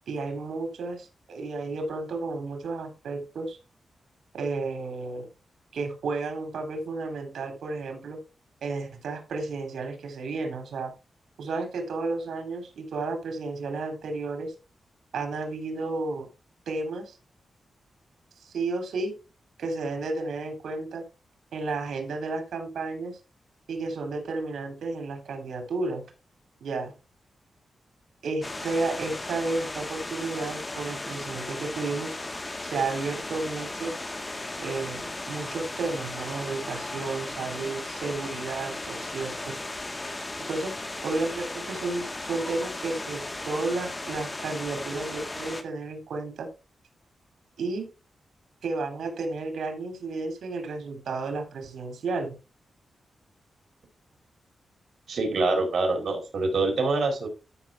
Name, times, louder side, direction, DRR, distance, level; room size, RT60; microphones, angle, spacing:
voice 1, 0.1-3.6 4.3-5.3 5.7-8.2 8.6-10.9 11.4-14.5 15.1-16.3 16.7-17.2 18.4-19.1 19.6-21.0 21.5-23.2 23.7-26.0 26.6-26.9 28.2-32.2 32.6-33.9 34.6-39.6 40.5-40.7 41.0-46.5 47.6-47.9 48.6-52.3, right 3 dB, 90° right, 5 dB, 3.3 m, -32 dB
sound 1, 28.4-45.6, left 2 dB, 20° left, 1.5 m, -36 dB
voice 2, 55.1-57.3, right 3 dB, 65° right, 2 dB, 4.3 m, -25 dB
13.5 x 6.2 x 3.5 m, 0.29 s
wide cardioid pair, 105°, 0 cm